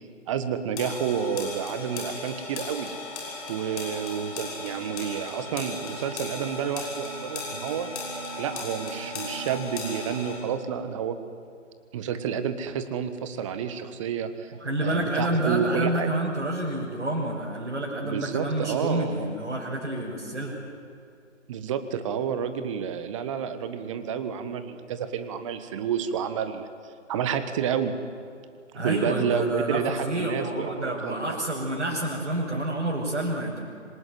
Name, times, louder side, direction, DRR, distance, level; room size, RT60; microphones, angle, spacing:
voice 1, 0.3-3.0 3.5-7.9 8.4-11.2 11.9-14.5 14.8-16.1 18.0-19.3 21.5-26.7 27.1-28.0 28.8-31.4, right 7 dB, 25° right, 11 dB, 1.4 m, -30 dB
sound 1, 0.8-10.4, left 2 dB, 30° left, 6.3 m, -36 dB
voice 2, 14.6-20.6 28.7-33.6, right 1 dB, 65° right, -5 dB, 6.4 m, -28 dB
26.5 x 19.5 x 9.3 m, 2.4 s
figure-of-eight pair, 135°, 38 cm